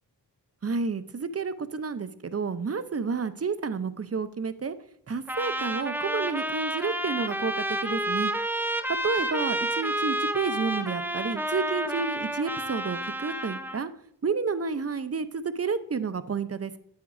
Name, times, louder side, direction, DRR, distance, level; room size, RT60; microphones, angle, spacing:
voice 1, 0.6-4.8 5.1-8.3 9.0-13.9 14.2-16.8, right 5 dB, 35° right, 13 dB, 0.7 m, -30 dB
Trumpet, 5.3-13.8, right 1 dB, 5° right, 0.8 m, -30 dB
9.1 x 7.9 x 2.6 m, 0.74 s
cardioid pair, 45°, 41 cm